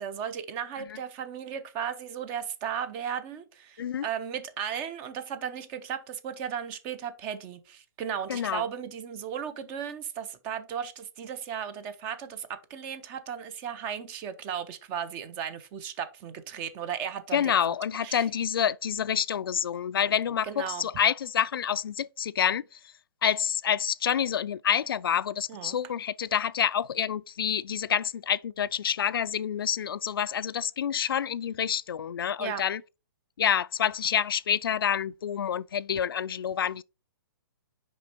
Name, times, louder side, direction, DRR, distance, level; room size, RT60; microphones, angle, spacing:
voice 1, 0.0-17.5 18.0-18.3 20.4-20.9 25.5-25.8 32.4-32.6, right 8 dB, 15° right, 0.4 m, -35 dB
voice 2, 8.3-8.6 17.3-22.6 23.2-32.8 33.4-36.8, left 8 dB, 85° left, 0.4 m, -28 dB
6.1 x 5.2 x 4.2 m
hypercardioid pair, 175°, 12 cm